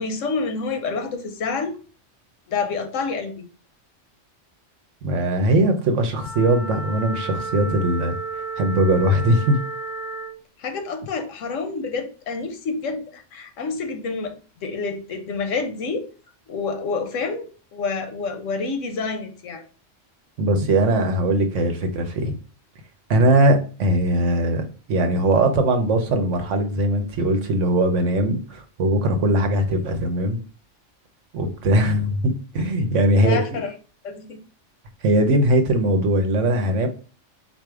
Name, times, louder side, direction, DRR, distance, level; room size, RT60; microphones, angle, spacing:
voice 1, 0.0-1.8 2.5-3.5 10.6-14.3 14.6-16.1 16.5-19.6 33.2-33.7 34.0-34.4, left 4 dB, 85° left, 6 dB, 1.2 m, -28 dB
voice 2, 5.0-9.6 20.4-22.3 23.1-30.4 31.3-33.6 35.0-36.9, right 1 dB, 75° right, 6 dB, 1.1 m, -20 dB
Wind instrument woodwind instrument, 6.1-10.4, right 3 dB, 40° left, 1.2 m, -32 dB
4.1 x 2.7 x 4.6 m, 0.37 s
omnidirectional pair, 1.3 m